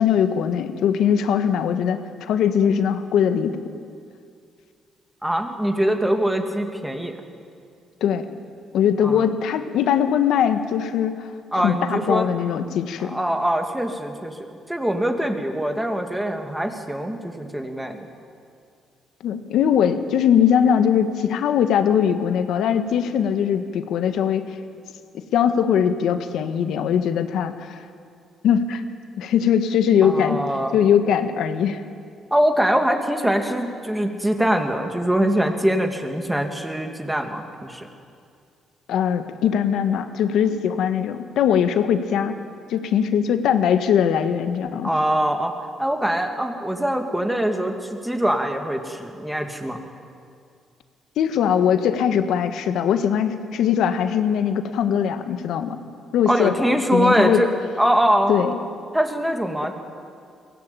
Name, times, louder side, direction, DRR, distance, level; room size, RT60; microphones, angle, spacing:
voice 1, 0.0-3.6 8.0-8.3 8.7-13.2 19.2-24.4 25.1-27.8 28.4-28.8 29.2-30.4 30.7-31.8 38.9-42.4 42.7-44.9 51.2-55.8 56.1-57.4 58.3-58.6, left 8 dB, 80° left, 8 dB, 1.5 m, -21 dB
voice 2, 5.2-7.1 9.0-9.3 11.5-12.3 13.0-18.1 30.0-30.7 32.3-37.9 44.8-45.5 45.8-49.9 56.3-57.5 57.8-58.4 58.9-59.7, right 1 dB, 5° right, 4 dB, 2.6 m, -23 dB
22.5 x 17.0 x 9.0 m, 2.3 s
cardioid pair, 90°, 0 cm